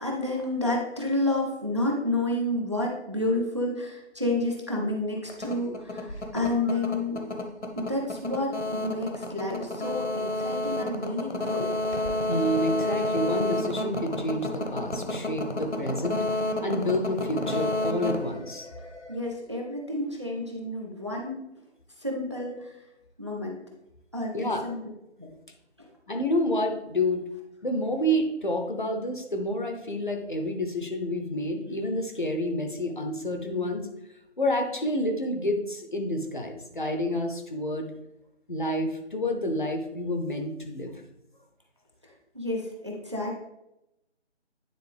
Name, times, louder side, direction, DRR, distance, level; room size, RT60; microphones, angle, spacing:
voice 1, 0.0-7.2 7.7-11.7 19.1-21.4 22.0-22.7 23.2-23.6 24.1-24.8 42.3-43.4, left 1 dB, 25° right, -1 dB, 0.7 m, -30 dB
sound 1, 5.3-19.1, left 1 dB, 75° left, 1.2 m, -30 dB
voice 2, 12.3-16.2 16.6-18.7 24.3-24.7 26.1-27.2 27.6-33.9 34.4-37.9 38.5-40.9, left 1 dB, 45° left, 4 dB, 0.8 m, -29 dB
9.4 x 3.8 x 3.4 m, 0.89 s
figure-of-eight pair, 160°, 35 cm